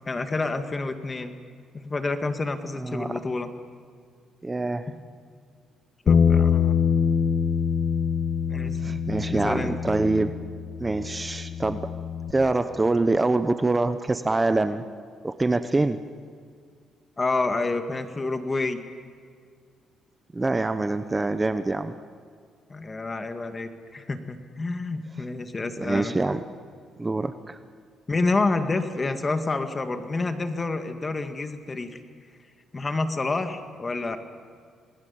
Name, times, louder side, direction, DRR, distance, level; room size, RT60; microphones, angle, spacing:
voice 1, 0.1-1.4 1.7-3.5 6.0-6.8 8.5-9.0 9.3-9.7 17.2-18.8 22.7-26.2 28.1-32.0 32.7-34.2, left 3 dB, 25° left, 7 dB, 2.1 m, -28 dB
voice 2, 2.8-3.2 4.4-4.9 8.8-10.4 10.8-11.9 12.3-14.8 15.2-16.0 20.3-21.9 25.8-26.4 27.0-27.6, right 2 dB, 20° right, 11 dB, 0.9 m, -25 dB
Bass guitar, 6.1-12.3, left 7 dB, 55° left, 1.4 m, -24 dB
28.5 x 20.0 x 7.2 m, 2.1 s
cardioid pair, 90°, 0 cm